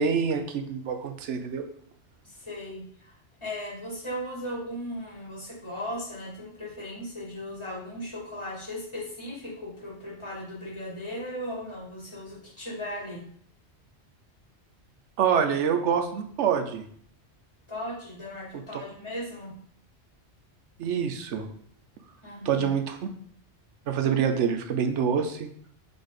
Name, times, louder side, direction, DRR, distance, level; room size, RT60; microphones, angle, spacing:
voice 1, 0.0-1.6 15.2-16.8 20.8-21.5 22.4-23.0 23.9-25.5, right 7 dB, 85° right, 6 dB, 1.0 m, -26 dB
voice 2, 2.2-3.1 3.4-13.2 17.7-19.5 22.2-22.7, equal, 25° left, -7 dB, 3.0 m, -37 dB
5.4 x 4.1 x 5.1 m, 0.62 s
omnidirectional pair, 1.2 m